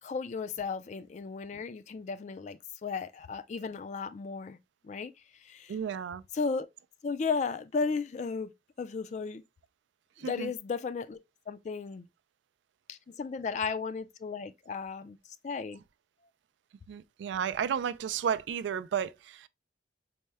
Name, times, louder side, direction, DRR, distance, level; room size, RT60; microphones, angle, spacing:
voice 1, 0.0-4.6 4.8-5.8 6.3-6.7 7.0-8.5 8.8-9.4 10.2-11.2 11.5-12.1 12.9-15.8, left 5 dB, 40° left, 0.3 m, -35 dB
voice 2, 5.7-6.2 10.2-10.5 16.9-19.5, right 8 dB, 90° right, 0.3 m, -33 dB
4.3 x 2.1 x 3.2 m
head